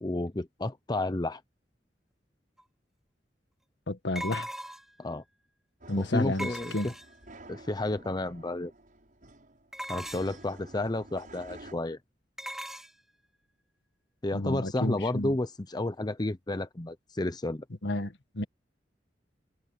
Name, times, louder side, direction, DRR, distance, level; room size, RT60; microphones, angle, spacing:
voice 1, 0.0-1.4 5.0-5.2 6.0-6.9 7.5-8.7 9.9-12.0 14.2-17.6, left 2 dB, 25° left, 0.8 m, -31 dB
sound 1, 2.6-2.7 4.2-5.0 6.4-7.3 9.7-10.4 12.4-12.9, equal, ahead, 3.6 m, -39 dB
voice 2, 3.9-4.5 5.9-6.9 14.3-15.3 17.8-18.4, left 2 dB, 85° left, 1.7 m, -31 dB
sound 2, 5.8-11.7, right 2 dB, 50° right, 7.1 m, -51 dB
head